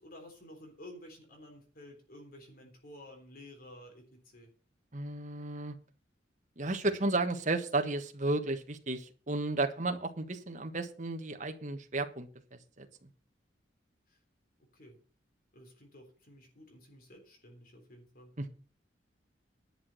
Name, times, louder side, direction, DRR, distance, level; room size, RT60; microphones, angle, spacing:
voice 1, 0.0-4.5 14.1-14.2 14.6-15.0 15.5-18.3, left 1 dB, 50° left, 3 dB, 3.5 m, -52 dB
voice 2, 4.9-5.7 6.6-12.3 12.8-13.1 18.4-18.5, right 2 dB, 40° right, 6 dB, 1.5 m, -33 dB
11.0 x 6.1 x 7.7 m, 0.39 s
head